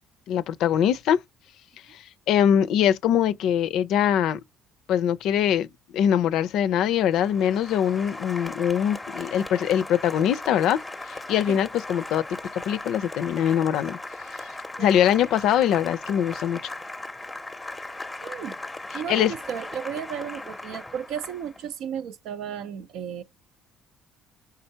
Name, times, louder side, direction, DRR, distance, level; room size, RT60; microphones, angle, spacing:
voice 1, 0.3-1.2 2.3-4.4 4.9-5.7 5.9-10.8 11.3-12.2 12.7-14.0 14.8-16.6 19.1-19.3, left 9 dB, 70° left, 0.4 m, -22 dB
Applause, 6.9-21.7, left 2 dB, 10° left, 0.7 m, -38 dB
voice 2, 18.2-18.6 18.9-23.2, right 8 dB, 70° right, 0.6 m, -34 dB
4.4 x 3.6 x 2.7 m
supercardioid pair, 90°, 0 cm